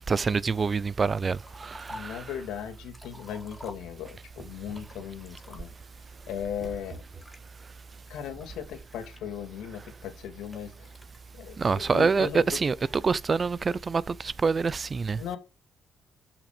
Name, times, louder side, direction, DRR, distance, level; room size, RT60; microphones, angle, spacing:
voice 1, 0.1-2.4 11.6-15.2, right 5 dB, 35° right, 0.5 m, -26 dB
Liquid, 1.2-2.2 2.7-4.2 4.7-5.9 6.6-7.4 8.0-9.7 10.5-11.2, left 1 dB, 5° left, 3.7 m, -49 dB
voice 2, 1.9-5.7 6.3-7.0 8.1-10.9 11.3-12.6 15.2-15.4, left 9 dB, 90° left, 2.7 m, -37 dB
sound 1, 2.9-3.2 3.5-5.2 5.6-7.5 8.0-8.1 8.5-8.8 9.1-9.7 10.0-10.1 10.5-10.6 10.9-11.1, right 3 dB, 15° right, 4.1 m, -51 dB
12.5 x 6.0 x 5.1 m
cardioid pair, 90°, 0 cm